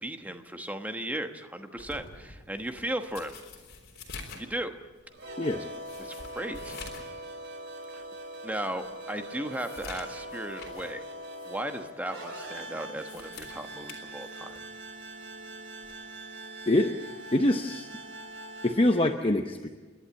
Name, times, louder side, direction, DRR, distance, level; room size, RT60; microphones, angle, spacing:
voice 1, 0.0-3.3 4.3-4.8 6.0-6.8 8.4-11.1 11.4-14.6, right 1 dB, 5° right, 6 dB, 1.1 m, -36 dB
sound 1, 1.8-7.2 7.5-7.6 8.2-8.3 8.7-11.0 11.3-11.5 12.8-14.7 15.8-16.1, left 4 dB, 50° left, 3.6 m, -47 dB
sound 2, 5.1-18.7, right 1 dB, 55° right, 4.0 m, -42 dB
voice 2, 16.7-17.0 17.3-17.9 18.6-19.7, left 1 dB, 25° left, 5 dB, 0.8 m, -24 dB
29.5 x 11.5 x 8.9 m, 1.4 s
head